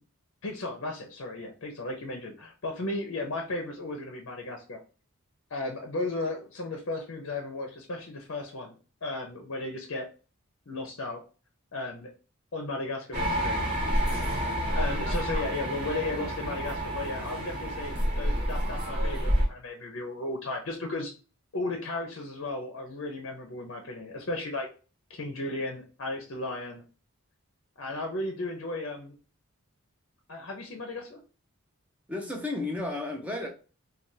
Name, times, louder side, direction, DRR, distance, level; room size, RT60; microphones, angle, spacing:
voice 1, 0.4-4.8 5.5-8.8 9.0-10.1 10.7-11.2 11.7-12.1 12.5-13.6 14.7-21.1 21.5-24.7 25.1-26.8 27.8-29.1 30.3-31.2, left 2 dB, 60° left, 0.6 m, -35 dB
sound 1, 13.1-19.4, equal, 45° right, 1.3 m, -29 dB
voice 2, 32.1-33.5, left 2 dB, 5° right, 0.5 m, -32 dB
3.4 x 2.3 x 2.6 m
head